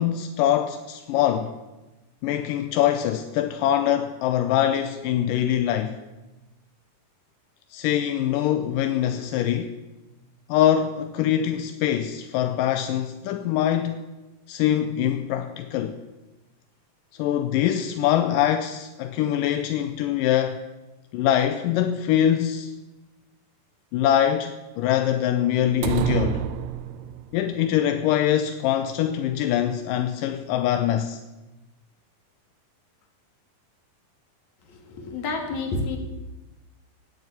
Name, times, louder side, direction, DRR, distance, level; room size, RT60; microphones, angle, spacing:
voice 1, 0.0-1.5 2.2-6.0 7.7-9.7 10.5-14.0 14.5-16.0 17.2-20.6 21.1-22.7 23.9-26.4 27.3-31.2, left 11 dB, 80° left, 2.3 m, -23 dB
sound 1, 25.8-27.4, right 11 dB, 80° right, 2.3 m, -27 dB
voice 2, 34.7-36.0, left 3 dB, 55° left, 3.3 m, -29 dB
17.0 x 9.5 x 8.4 m
omnidirectional pair, 4.1 m